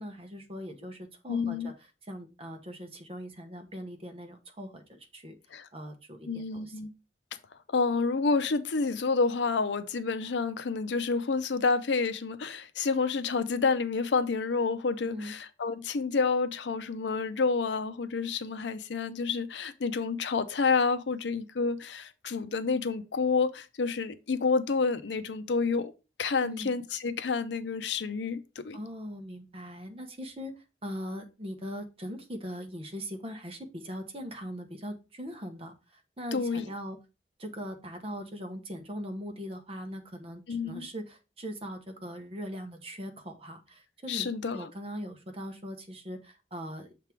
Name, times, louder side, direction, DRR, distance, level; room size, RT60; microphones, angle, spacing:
voice 1, 0.0-1.7 2.0-5.3 5.7-6.8 15.0-15.4 26.4-26.7 28.7-30.5 30.8-37.0 37.4-46.9, equal, 35° right, 1.0 m, -40 dB
voice 2, 1.3-1.7 5.5-5.7 6.3-6.9 7.7-25.9 26.2-28.8 36.3-36.7 40.5-40.9 44.1-44.7, left 4 dB, 80° left, 0.6 m, -29 dB
6.7 x 3.6 x 4.4 m
head